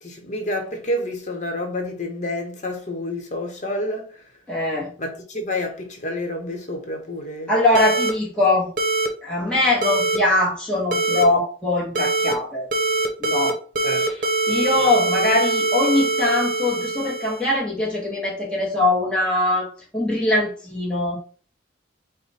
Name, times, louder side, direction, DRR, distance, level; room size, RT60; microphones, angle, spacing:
voice 1, 0.0-4.2 5.0-7.5 13.8-14.1 14.5-14.9, left 1 dB, 40° left, 1.0 m, -29 dB
voice 2, 4.5-4.9 7.5-8.7 9.2-12.7 13.2-13.6 14.5-21.2, left 2 dB, 5° left, 1.0 m, -22 dB
sound 1, 7.8-8.1 8.8-9.1 9.8-10.2 10.9-11.2 12.0-12.3 12.7-13.5 13.8-17.5, right 2 dB, 50° right, 0.9 m, -22 dB
4.8 x 2.2 x 4.1 m
head